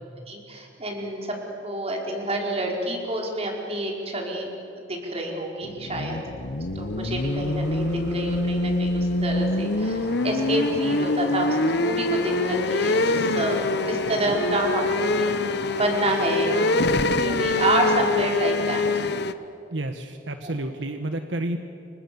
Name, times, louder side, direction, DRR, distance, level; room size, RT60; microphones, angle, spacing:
voice 1, 0.3-1.4 1.6-4.5 4.8-6.2 6.7-15.4 15.7-19.1 20.4-20.5, right 1 dB, 35° right, 0 dB, 4.9 m, -28 dB
sound 1, 5.6-19.3, left 2 dB, 60° left, 1.0 m, -25 dB
sound 2, 6.2-18.9 19.2-19.6, equal, 15° right, 5.7 m, -42 dB
voice 2, 19.7-21.6, right 1 dB, 75° right, 7 dB, 1.3 m, -30 dB
29.5 x 24.5 x 7.1 m, 2.8 s
head